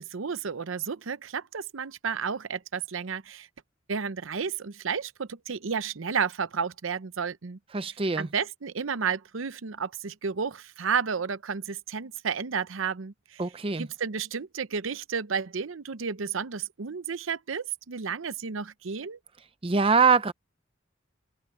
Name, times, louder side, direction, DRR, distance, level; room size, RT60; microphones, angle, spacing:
voice 1, 0.0-3.5 3.9-7.6 8.2-13.4 13.8-19.2, right 6 dB, 85° right, 0.7 m, -32 dB
voice 2, 7.7-8.3 13.4-13.9 19.6-20.3, right 5 dB, 30° right, 0.6 m, -23 dB
head